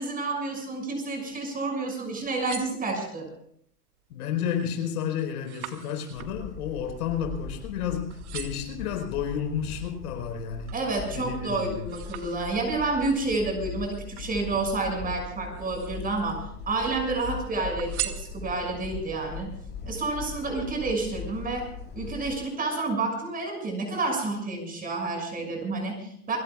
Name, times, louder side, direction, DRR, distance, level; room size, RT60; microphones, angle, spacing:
voice 1, 0.0-3.3 10.7-19.5 19.9-21.7 21.9-26.4, right 3 dB, 20° right, 2 dB, 6.6 m, -29 dB
sound 1, 2.2-3.4 3.9-4.3 4.7-7.8 8.1-8.8 9.4-10.9 11.3-12.9 13.8-14.9 15.4-16.2 16.6-17.3 17.8-18.8 19.4-19.5, right 12 dB, 65° right, 2.3 m, -41 dB
voice 2, 4.1-10.8 11.1-11.9, left 8 dB, 70° left, 3 dB, 4.7 m, -31 dB
sound 2, 6.1-22.4, left 5 dB, 20° left, 4.3 m, -40 dB
29.0 x 17.5 x 2.4 m, 0.68 s
hypercardioid pair, 130°, 47 cm